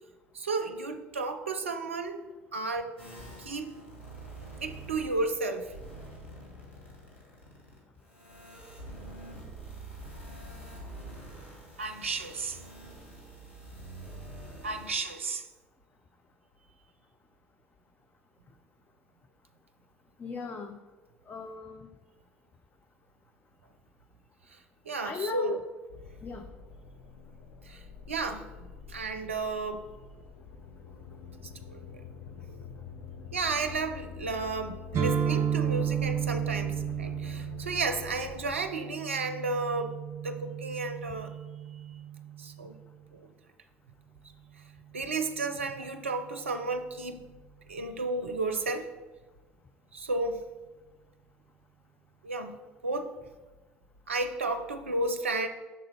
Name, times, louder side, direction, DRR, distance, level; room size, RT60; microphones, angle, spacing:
voice 1, 0.3-2.2 2.5-2.9 3.4-3.7 4.6-5.7 11.8-12.6 14.6-15.4 24.5-24.6 24.9-25.5 27.6-29.9 31.7-32.0 33.3-39.9 40.2-41.3 41.7-41.8 42.4-42.8 43.1-43.3 44.9-47.3 47.7-48.9 49.9-50.4 52.2-52.6 52.8-53.1 54.1-55.5, right 3 dB, 85° right, 7 dB, 0.5 m, -33 dB
sound 1, 3.0-5.3 5.6-14.9, right 1 dB, 85° left, 1.8 m, -46 dB
voice 2, 20.2-20.8 21.3-21.9 25.0-25.6 26.2-26.5, left 4 dB, 30° left, 6 dB, 0.5 m, -36 dB
sound 2, 25.9-38.4, left 6 dB, 70° left, 1.0 m, -46 dB
sound 3, 34.9-42.7, right 9 dB, 40° right, 0.8 m, -33 dB
6.4 x 3.8 x 5.4 m, 1.2 s
figure-of-eight pair, 60°, 7 cm